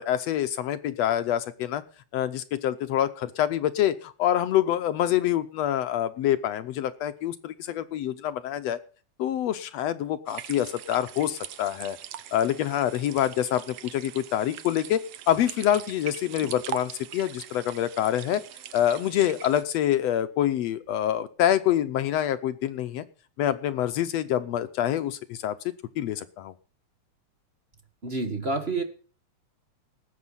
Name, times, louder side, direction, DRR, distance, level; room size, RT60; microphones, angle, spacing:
voice 1, 0.0-1.8 2.1-8.8 9.2-12.0 12.3-18.4 18.7-23.1 23.4-25.6 26.0-26.5, left 11 dB, 70° left, 11 dB, 1.7 m, -26 dB
sound 1, 10.3-19.6, right 11 dB, 70° right, 1.8 m, -42 dB
voice 2, 28.0-28.8, right 3 dB, 30° right, 7 dB, 1.3 m, -28 dB
18.5 x 8.5 x 5.6 m, 0.40 s
omnidirectional pair, 3.4 m